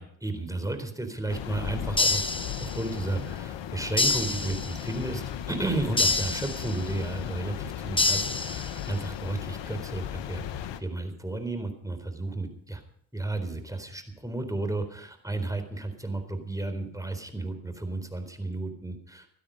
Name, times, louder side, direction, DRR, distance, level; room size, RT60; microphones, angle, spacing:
voice 1, 0.0-2.3 2.6-10.4 10.8-12.8 13.1-19.3, right 2 dB, 10° right, 7 dB, 4.0 m, -33 dB
sound 1, 1.3-10.8, left 10 dB, 75° left, 1.2 m, -36 dB
sound 2, 2.0-3.0 4.0-5.0 6.0-7.0 8.0-9.0, left 3 dB, 10° left, 1.2 m, -27 dB
17.0 x 12.0 x 5.4 m, 0.67 s
supercardioid pair, 50°, 44 cm